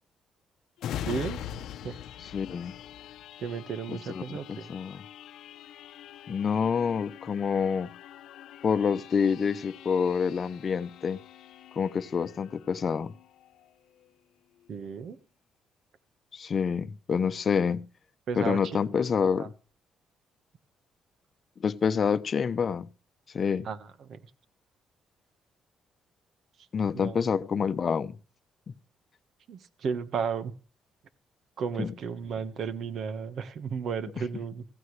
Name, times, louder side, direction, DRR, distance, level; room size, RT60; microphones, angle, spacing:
sound 1, 0.8-14.1 14.6-14.7, left 10 dB, 80° left, 0.7 m, -43 dB
voice 1, 1.1-1.4 1.8-2.0 3.4-4.7 14.7-15.2 18.3-18.8 19.4-19.5 23.6-24.2 26.9-27.2 29.5-30.5 31.6-34.7, right 6 dB, 65° right, 1.4 m, -34 dB
voice 2, 2.3-2.7 3.9-5.0 6.3-7.9 8.6-11.2 11.8-13.1 16.3-17.8 18.4-19.5 21.6-22.9 23.3-23.7 26.7-28.1 31.8-31.9, left 6 dB, 45° left, 0.8 m, -27 dB
16.0 x 16.0 x 3.3 m
cardioid pair, 90°, 0 cm